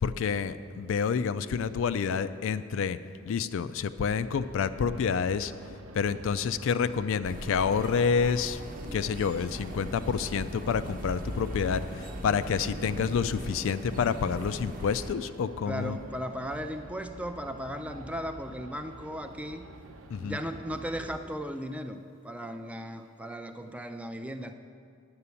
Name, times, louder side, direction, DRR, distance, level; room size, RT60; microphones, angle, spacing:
voice 1, 0.0-3.0 3.3-5.5 5.9-8.6 8.9-16.0 20.1-20.4, left 6 dB, 65° left, 13 dB, 0.3 m, -28 dB
sound 1, 4.2-21.2, right 1 dB, 80° right, 0.7 m, -48 dB
sound 2, 7.2-15.2, equal, 40° right, 0.9 m, -39 dB
voice 2, 15.7-19.6 20.2-24.5, equal, 5° right, 7 dB, 0.4 m, -36 dB
9.6 x 6.8 x 7.0 m, 2.3 s
head